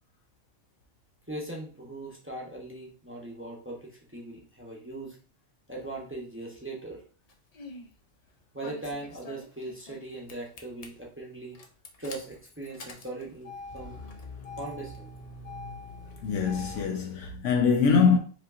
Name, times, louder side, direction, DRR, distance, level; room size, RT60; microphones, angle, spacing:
voice 1, 1.3-5.2 5.7-7.0 8.5-11.6 12.0-14.0 14.6-15.1, right 2 dB, 15° right, 0.7 m, -39 dB
Engine starting, 7.3-7.9 8.6-10.0 10.3-10.9 11.5-16.9, left 2 dB, 45° left, 0.5 m, -43 dB
voice 2, 16.2-18.2, left 5 dB, 85° left, 1.0 m, -23 dB
5.0 x 2.9 x 2.5 m
omnidirectional pair, 1.2 m